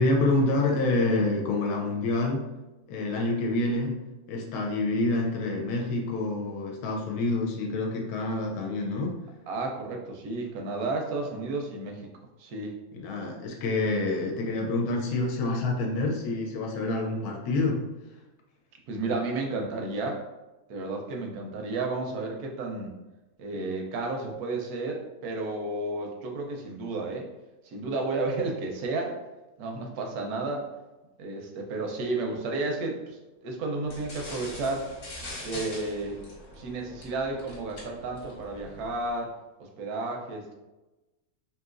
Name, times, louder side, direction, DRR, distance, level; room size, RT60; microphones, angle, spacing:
voice 1, 0.0-2.4 2.9-3.9 4.3-9.2 12.9-17.8, left 2 dB, 80° left, 0 dB, 1.1 m, -27 dB
voice 2, 9.5-12.0 12.4-12.7 18.9-20.2 20.7-22.9 23.4-27.3 27.6-29.2 29.6-30.7 31.2-34.9 35.4-36.2 36.5-39.3 39.6-40.6, right 3 dB, 80° right, 2 dB, 1.1 m, -32 dB
sound 1, 33.9-39.1, left 1 dB, 55° left, 1.1 m, -43 dB
3.0 x 2.8 x 2.4 m, 1.1 s
omnidirectional pair, 1.6 m